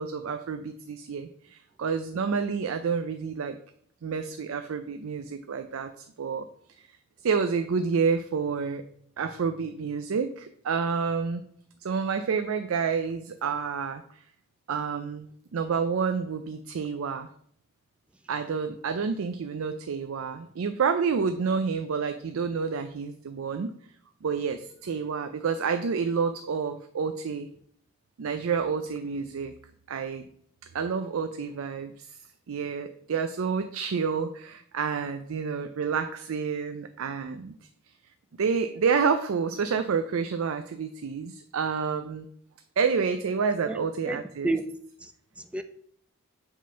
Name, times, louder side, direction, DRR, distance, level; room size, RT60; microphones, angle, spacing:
voice 1, 0.0-3.6 4.0-6.5 6.8-6.9 7.2-8.8 9.2-11.5 11.8-14.2 14.7-17.3 18.3-23.7 24.2-27.5 28.2-29.5 29.9-30.2 30.7-32.2 32.5-37.6 38.4-42.3 42.8-44.5, right 5 dB, 70° right, 0.4 m, -29 dB
voice 2, 43.7-45.6, right 2 dB, 5° right, 0.4 m, -33 dB
7.5 x 3.7 x 5.5 m
head